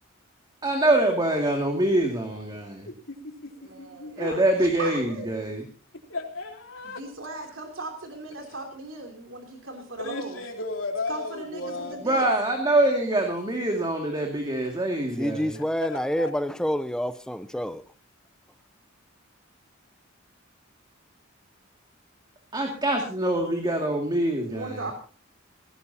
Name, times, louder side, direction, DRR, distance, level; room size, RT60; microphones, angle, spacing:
voice 1, 0.6-2.9 4.2-5.6 12.0-15.6 22.5-24.8, right 1 dB, 20° right, 2.3 m, -24 dB
voice 2, 3.1-3.5 3.8-4.3 6.1-7.0 10.0-12.0 15.5-16.3, left 3 dB, 70° left, 3.7 m, -35 dB
voice 3, 3.6-5.3 6.8-10.4 11.1-12.2 24.4-24.9, right 2 dB, 70° right, 3.1 m, -38 dB
voice 4, 15.2-17.8, equal, 5° left, 0.7 m, -28 dB
18.5 x 16.5 x 2.8 m
head